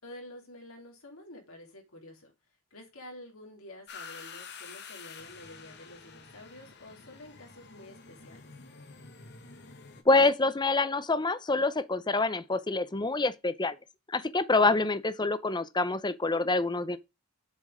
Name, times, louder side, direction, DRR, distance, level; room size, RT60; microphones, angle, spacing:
voice 1, 0.0-2.3 2.7-8.5, left 1 dB, 70° left, 3.0 m, -49 dB
sound 1, 3.9-10.0, left 5 dB, 50° left, 1.4 m, -48 dB
voice 2, 10.1-13.8 14.1-17.0, left 3 dB, 20° left, 0.6 m, -26 dB
7.5 x 6.1 x 4.9 m
head